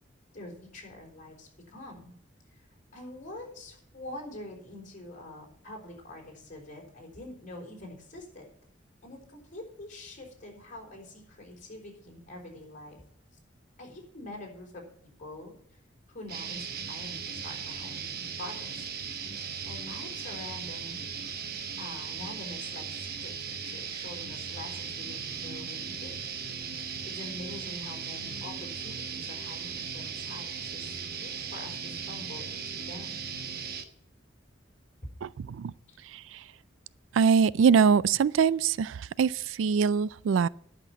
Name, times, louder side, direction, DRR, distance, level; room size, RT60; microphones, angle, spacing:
voice 1, 0.3-2.1 2.5-8.5 9.0-13.0 13.8-15.8 16.1-18.9 19.6-21.0 21.8-23.3 23.6-26.1 27.0-33.3 35.9-36.0 38.1-38.2, left 1 dB, 40° left, 4.0 m, -45 dB
sound 1, 16.3-33.8, right 6 dB, 55° right, 1.0 m, -37 dB
voice 2, 35.2-35.7 36.1-36.4 37.1-40.5, right 6 dB, 85° right, 0.3 m, -24 dB
11.0 x 6.0 x 8.4 m
head